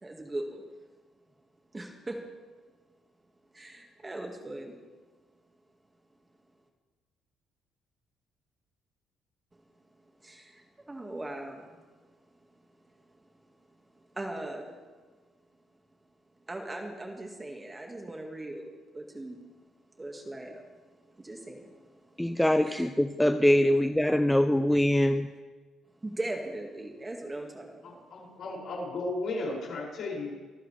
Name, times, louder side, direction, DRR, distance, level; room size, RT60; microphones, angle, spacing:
voice 1, 0.0-0.6 1.7-2.2 3.5-4.8 10.2-12.1 13.1-13.2 13.9-14.8 16.5-18.7 18.9-19.4 20.0-20.7 21.1-22.9 26.0-28.1, right 1 dB, 15° right, 1.9 m, -40 dB
voice 2, 22.2-25.3, left 1 dB, 5° left, 0.5 m, -23 dB
voice 3, 28.1-30.4, left 2 dB, 55° left, 6.5 m, -34 dB
24.5 x 14.0 x 3.4 m
cardioid pair, 120°, 0 cm